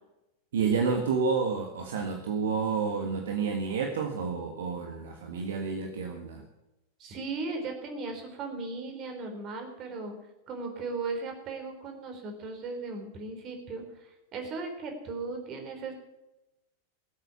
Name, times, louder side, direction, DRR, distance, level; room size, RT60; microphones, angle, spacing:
voice 1, 0.5-6.4, right 5 dB, 60° right, 4 dB, 1.6 m, -29 dB
voice 2, 7.0-10.1 10.5-15.9, right 3 dB, 35° right, 4 dB, 3.9 m, -37 dB
18.0 x 8.2 x 7.1 m, 0.93 s
figure-of-eight pair, 90°, 0 cm